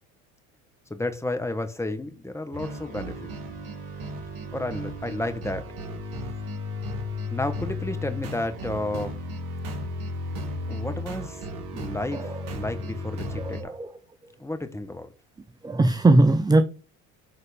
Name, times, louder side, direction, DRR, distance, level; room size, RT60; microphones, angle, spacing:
voice 1, 0.9-3.3 4.5-5.6 7.3-9.2 10.7-11.4 11.7-13.7 14.4-15.1, left 1 dB, 5° left, 1.6 m, -32 dB
sound 1, 2.5-13.6, left 1 dB, 65° right, 2.6 m, -34 dB
voice 2, 13.4-13.9 15.6-16.6, right 2 dB, 10° right, 0.7 m, -20 dB
9.9 x 4.1 x 5.3 m
hypercardioid pair, 75°, 42 cm